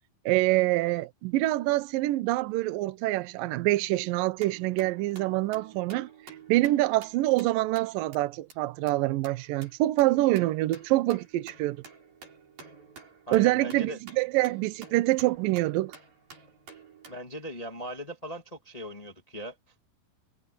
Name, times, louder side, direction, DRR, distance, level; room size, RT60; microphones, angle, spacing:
voice 1, 0.3-6.1 6.5-11.8 13.3-15.9, right 18 dB, 75° right, 2.2 m, -26 dB
sound 1, 4.4-8.2 8.5-8.6 8.9-9.0 9.2-17.2, right 5 dB, 60° right, 9.2 m, -50 dB
voice 2, 13.3-14.0 17.1-19.5, equal, 40° left, 0.5 m, -39 dB
omnidirectional pair, 4.7 m